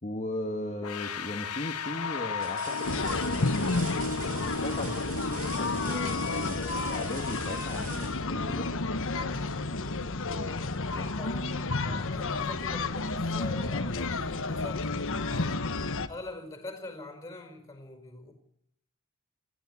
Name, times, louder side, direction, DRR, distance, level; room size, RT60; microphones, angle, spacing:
voice 1, 0.0-3.7 4.2-8.7 10.1-11.1 15.0-15.3, left 1 dB, 30° left, 1.7 m, -38 dB
sound 1, 0.6-1.1 1.6-1.7 2.4-9.0 10.8-11.0 11.4-12.5 13.8-13.9, right 4 dB, 40° right, 4.0 m, -45 dB
sound 2, 0.8-11.7, left 4 dB, 85° left, 1.5 m, -37 dB
sound 3, 2.8-16.1, left 3 dB, 60° left, 1.4 m, -31 dB
voice 2, 10.9-15.7 16.1-18.3, left 2 dB, 15° left, 5.0 m, -43 dB
19.5 x 15.0 x 9.6 m
head